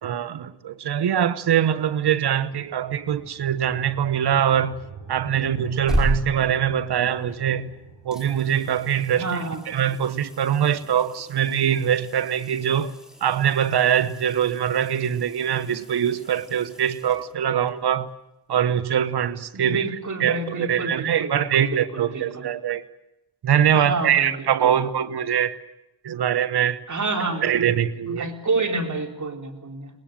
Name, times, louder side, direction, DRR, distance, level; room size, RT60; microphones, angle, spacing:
voice 1, 0.0-4.8 5.1-7.7 8.0-9.3 9.7-12.9 13.2-18.1 18.5-19.9 20.2-22.8 23.4-25.6 26.0-26.8 27.4-28.3, right 9 dB, 70° right, 1.2 m, -23 dB
sound 1, 2.2-11.9, right 5 dB, 85° right, 5.3 m, -47 dB
sound 2, 5.6-7.7 8.1-17.7 20.5-20.6, equal, ahead, 5.2 m, -34 dB
voice 2, 9.1-9.6 19.5-22.5 23.7-24.8 26.9-27.4 28.1-29.9, right 3 dB, 45° right, 4.0 m, -29 dB
22.5 x 20.5 x 9.0 m
cardioid pair, 60°, 41 cm